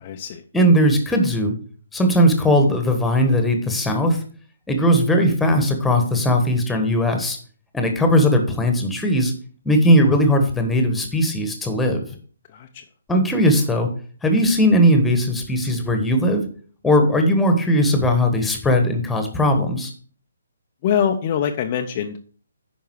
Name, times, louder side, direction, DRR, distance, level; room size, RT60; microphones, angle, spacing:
voice 1, 0.0-0.4 12.5-12.8 20.8-22.2, left 8 dB, 30° left, 4 dB, 0.7 m, -23 dB
voice 2, 0.5-1.5 1.9-4.2 4.7-7.4 7.7-9.3 9.6-12.0 13.1-13.9 14.2-16.5 16.8-19.9, equal, 5° left, 5 dB, 1.4 m, -18 dB
9.4 x 5.6 x 4.7 m, 0.43 s
figure-of-eight pair, 135°, 0 cm